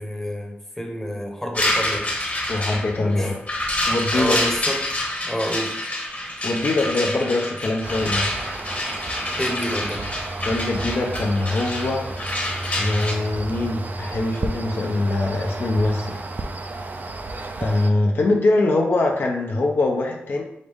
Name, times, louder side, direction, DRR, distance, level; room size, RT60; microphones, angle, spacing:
voice 1, 0.0-2.1 3.0-3.3 4.1-4.8 5.2-5.8 9.4-10.0, equal, 10° left, 2 dB, 0.9 m, -29 dB
sound 1, 1.5-13.1, left 1 dB, 35° left, 1.1 m, -27 dB
voice 2, 2.5-3.4 3.9-4.4 6.4-8.3 10.4-12.1 12.8-16.2 17.6-20.4, left 2 dB, 60° left, 1 dB, 0.6 m, -22 dB
sound 2, 7.8-17.9, right 2 dB, 45° right, 0.4 m, -32 dB
5.0 x 2.6 x 3.5 m, 0.80 s
cardioid pair, 65°, 4 cm